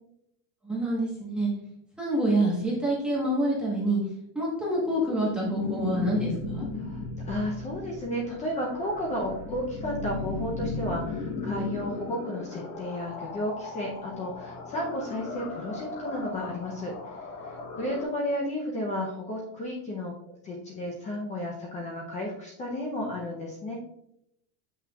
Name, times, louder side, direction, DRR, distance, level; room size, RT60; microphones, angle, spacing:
voice 1, 0.6-1.5 2.0-4.0 4.3-6.7 17.7-17.8, right 1 dB, ahead, -6 dB, 1.2 m, -27 dB
sound 1, 4.6-18.0, left 3 dB, 40° left, 1.1 m, -36 dB
voice 2, 6.8-20.1 20.4-23.7, left 1 dB, 20° left, -2 dB, 0.6 m, -33 dB
8.1 x 5.8 x 2.4 m, 0.77 s
cardioid pair, 175°, 38 cm